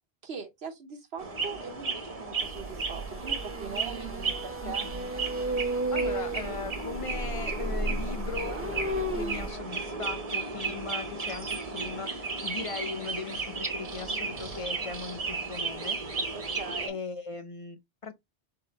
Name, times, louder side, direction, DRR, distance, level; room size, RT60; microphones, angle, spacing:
voice 1, 0.2-4.9 16.3-17.0, right 5 dB, 65° right, 1.0 m, -41 dB
sound 1, 1.2-16.9, right 4 dB, 35° right, 1.0 m, -34 dB
sound 2, 2.4-9.5, right 2 dB, 15° right, 0.7 m, -34 dB
voice 2, 4.6-5.1 5.6-8.6 9.1-16.0 16.9-18.2, left 5 dB, 50° left, 0.4 m, -39 dB
3.7 x 3.7 x 3.8 m
omnidirectional pair, 1.1 m